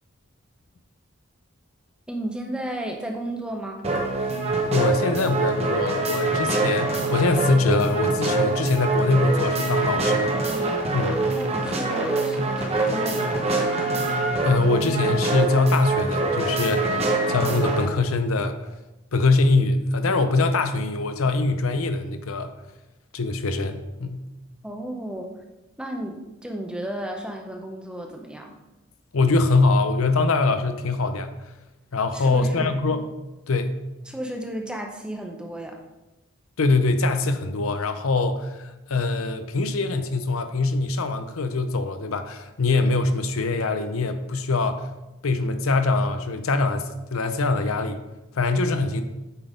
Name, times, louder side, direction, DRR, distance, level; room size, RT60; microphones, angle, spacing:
voice 1, 2.1-3.8 11.4-14.0 24.6-25.3 25.8-28.6 32.1-32.8 34.0-35.8, right 1 dB, 5° right, 2 dB, 0.7 m, -33 dB
sound 1, 3.8-17.9, right 2 dB, 30° right, 0.9 m, -24 dB
voice 2, 4.7-10.4 10.9-11.2 14.4-18.6 19.1-22.5 23.1-24.2 29.1-31.3 31.9-33.0 33.5-33.8 36.6-44.9 45.2-48.0 48.4-49.0, left 3 dB, 85° left, 9 dB, 0.6 m, -23 dB
8.2 x 4.0 x 5.1 m, 1.0 s
head